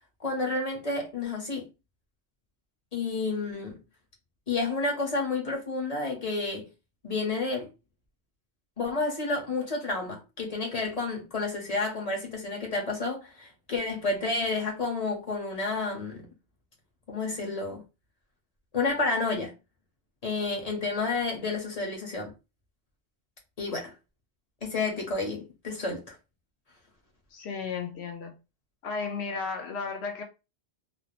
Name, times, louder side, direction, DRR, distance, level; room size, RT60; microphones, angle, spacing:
voice 1, 0.2-1.7 2.9-3.8 4.5-6.7 7.0-7.7 8.8-16.2 17.1-17.8 18.7-19.5 20.2-22.3 23.6-23.9 24.6-26.2, left 3 dB, 40° left, 0.8 m, -30 dB
voice 2, 27.3-28.4 28.8-30.2, left 5 dB, 75° left, 0.8 m, -34 dB
2.3 x 2.0 x 2.9 m
omnidirectional pair, 1.1 m